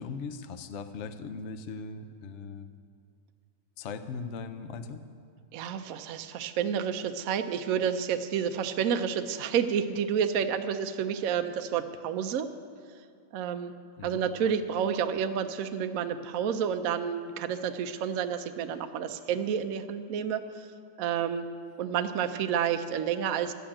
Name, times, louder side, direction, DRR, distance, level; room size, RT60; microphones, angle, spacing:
voice 1, 0.0-2.7 3.8-5.0 14.0-14.3, left 5 dB, 65° left, 9 dB, 0.7 m, -39 dB
voice 2, 5.5-12.5 13.3-13.7 14.0-20.4 21.0-21.5 21.8-23.5, right 8 dB, 65° right, 8 dB, 0.8 m, -30 dB
12.5 x 8.3 x 8.7 m, 2.2 s
omnidirectional pair, 2.0 m